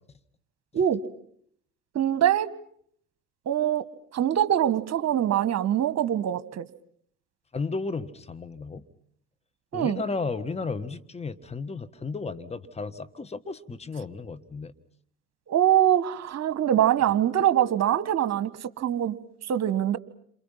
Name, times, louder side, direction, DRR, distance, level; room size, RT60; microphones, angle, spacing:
voice 1, 1.9-2.5 3.4-3.8 4.1-6.7 9.7-10.0 15.5-18.5 18.8-19.1 19.5-20.0, right 11 dB, 45° right, 14 dB, 1.6 m, -23 dB
voice 2, 7.5-8.8 9.7-14.7, left 4 dB, 15° left, 12 dB, 1.6 m, -33 dB
29.5 x 27.5 x 5.8 m, 0.65 s
hypercardioid pair, 65°, 37 cm